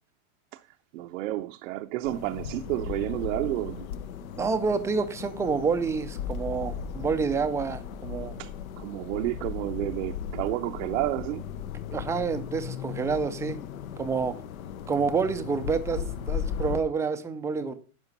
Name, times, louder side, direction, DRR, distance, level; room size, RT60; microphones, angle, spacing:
voice 1, 0.9-3.9 8.4-8.5 8.8-11.5, right 16 dB, 65° right, 0.6 m, -30 dB
sound 1, 2.0-16.8, left 8 dB, 75° left, 0.9 m, -37 dB
voice 2, 4.4-8.4 11.9-13.6 14.0-14.4 14.9-17.7, right 5 dB, 10° right, 0.4 m, -28 dB
sound 2, 6.2-10.8 12.6-12.7, left 3 dB, 25° left, 0.8 m, -42 dB
11.0 x 5.0 x 5.3 m
supercardioid pair, 130°, 42 cm